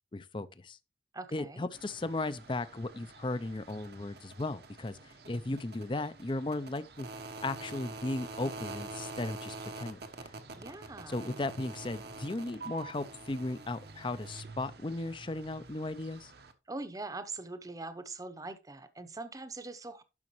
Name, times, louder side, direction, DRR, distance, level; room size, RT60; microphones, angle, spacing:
voice 1, 0.1-0.8 1.3-5.0 5.3-7.1 7.4-10.0 11.1-16.3, left 2 dB, 30° left, 0.5 m, -36 dB
voice 2, 1.1-1.7 10.5-11.2 16.7-20.0, right 3 dB, 20° right, 0.8 m, -42 dB
sound 1, 1.7-16.5, right 3 dB, 65° right, 1.1 m, -46 dB
11.0 x 6.3 x 3.1 m
head